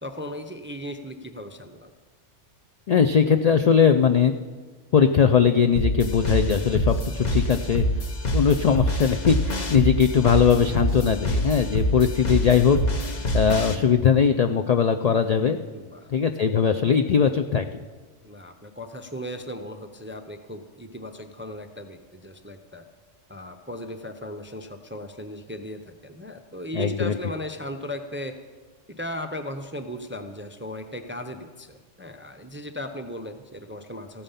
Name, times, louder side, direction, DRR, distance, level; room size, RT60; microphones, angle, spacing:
voice 1, 0.0-1.9 12.3-12.6 15.7-16.1 18.2-22.8 23.3-28.3 28.9-34.2, left 1 dB, 15° right, 6 dB, 0.4 m, -37 dB
voice 2, 2.9-4.3 4.9-7.8 8.3-13.1 13.3-15.6 16.1-17.7 26.7-27.1, left 7 dB, 70° left, 6 dB, 0.3 m, -20 dB
sound 1, 5.7-13.7, equal, 40° left, 1.0 m, -26 dB
15.0 x 8.9 x 5.7 m, 1.4 s
omnidirectional pair, 1.2 m